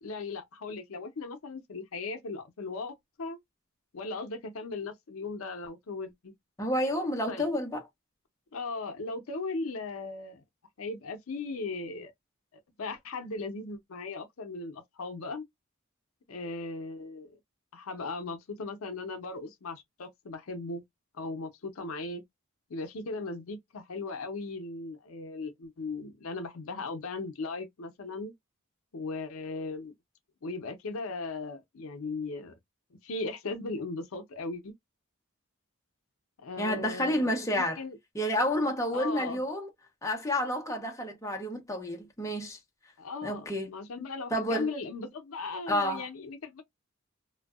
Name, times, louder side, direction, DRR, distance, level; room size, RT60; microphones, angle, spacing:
voice 1, 0.0-3.4 3.9-6.3 7.3-7.5 8.5-10.4 10.8-12.1 12.8-15.4 16.3-17.4 17.7-20.8 21.1-22.2 22.7-28.3 28.9-29.9 30.4-32.5 33.0-34.7 36.4-38.0 38.9-39.4 43.0-46.6, left 3 dB, 80° left, 0.6 m, -37 dB
voice 2, 6.6-7.8 36.6-37.8 38.1-39.7 40.0-42.6 43.2-43.7 44.3-44.7 45.7-46.1, equal, 15° left, 0.6 m, -30 dB
2.6 x 2.2 x 2.3 m
head